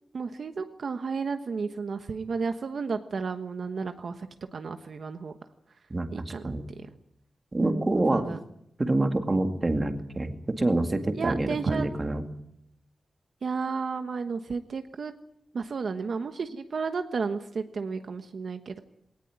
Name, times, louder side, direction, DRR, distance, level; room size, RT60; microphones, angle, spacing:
voice 1, 0.1-5.3 6.1-6.9 7.6-8.4 11.2-11.9 13.4-15.1 15.5-18.8, right 5 dB, 55° right, 7 dB, 1.2 m, -33 dB
voice 2, 5.9-6.6 7.5-8.3 8.8-12.2, right 2 dB, 25° right, 6 dB, 2.0 m, -27 dB
21.0 x 18.5 x 9.4 m, 0.76 s
wide cardioid pair, 175°, 0 cm